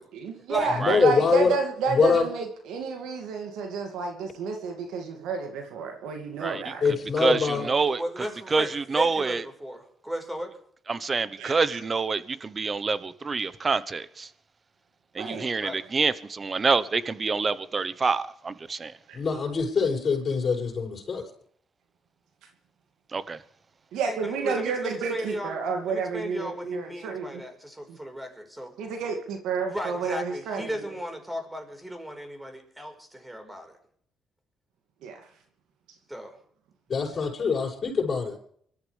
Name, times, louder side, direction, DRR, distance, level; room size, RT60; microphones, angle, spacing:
voice 1, 0.1-6.9 11.4-11.8 15.2-15.5 19.1-19.2 23.9-27.4 27.9-28.0 28.8-30.8 35.0-35.3, right 5 dB, 90° right, 2.4 m, -30 dB
voice 2, 0.7-1.5 1.9-2.2 6.8-7.7 19.1-21.2 36.9-38.3, left 5 dB, 45° left, 6.5 m, -24 dB
voice 3, 7.2-8.0 8.5-9.4 10.9-14.3 15.2-18.9 23.1-23.4, right 4 dB, 35° right, 1.0 m, -26 dB
voice 4, 7.8-10.6 15.6-15.8 24.0-25.6 25.9-28.7 29.6-33.8 36.1-36.4, equal, 10° right, 4.8 m, -36 dB
25.0 x 13.5 x 3.5 m
cardioid pair, 90°, 0 cm